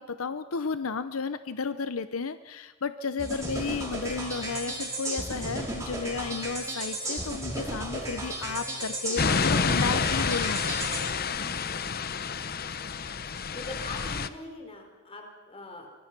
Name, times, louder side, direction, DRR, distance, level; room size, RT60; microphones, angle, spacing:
voice 1, 0.0-10.9, left 5 dB, 85° left, 12 dB, 0.8 m, -33 dB
voice 2, 3.2-3.5 11.3-12.1 13.2-15.9, left 1 dB, 30° left, 3 dB, 4.5 m, -43 dB
sound 1, 3.2-11.0, right 1 dB, 15° right, 5.3 m, -34 dB
sound 2, 9.2-14.3, left 5 dB, 45° left, 0.8 m, -29 dB
25.0 x 21.0 x 6.1 m, 1.3 s
head